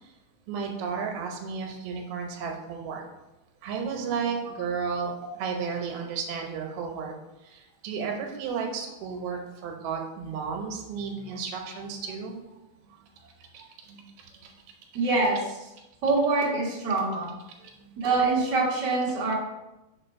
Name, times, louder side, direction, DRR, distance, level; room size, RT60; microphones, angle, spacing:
voice 1, 0.5-3.0 3.6-5.1 5.4-7.1 7.5-12.3 13.5-14.0 17.8-17.9, right 6 dB, 90° right, 2 dB, 2.8 m, -33 dB
voice 2, 14.9-15.4 16.0-17.3 18.0-19.3, right 3 dB, 55° right, -6 dB, 1.2 m, -24 dB
4.8 x 4.7 x 5.7 m, 1.0 s
omnidirectional pair, 4.3 m